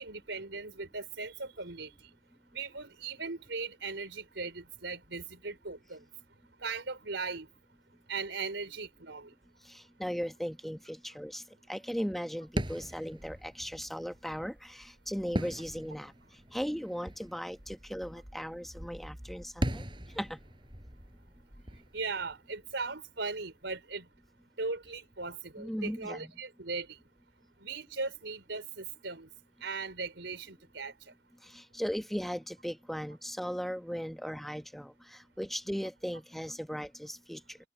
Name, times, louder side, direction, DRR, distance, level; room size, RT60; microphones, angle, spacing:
voice 1, 0.0-2.1 2.5-6.0 6.6-7.5 8.1-9.3 21.9-24.1 24.6-27.0 27.6-29.3 29.6-30.9, right 4 dB, 90° right, 4.3 m, -38 dB
voice 2, 9.7-11.4 11.7-16.1 16.5-19.8 20.1-20.4 25.6-26.3 31.4-37.6, equal, ahead, 1.2 m, -37 dB
sound 1, 12.5-23.1, equal, 25° right, 7.1 m, -40 dB
head